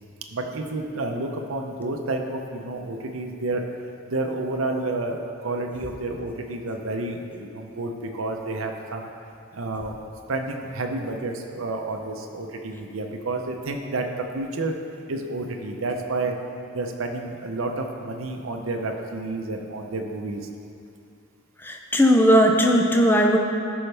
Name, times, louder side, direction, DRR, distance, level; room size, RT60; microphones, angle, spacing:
voice 1, 0.3-3.6 4.1-9.1 9.5-9.9 10.3-14.1 14.3-14.7 15.1-16.3 16.7-20.5, right 2 dB, 80° right, 3 dB, 0.7 m, -30 dB
voice 2, 21.6-23.4, equal, 10° left, 2 dB, 0.4 m, -18 dB
13.0 x 5.5 x 3.4 m, 2.6 s
head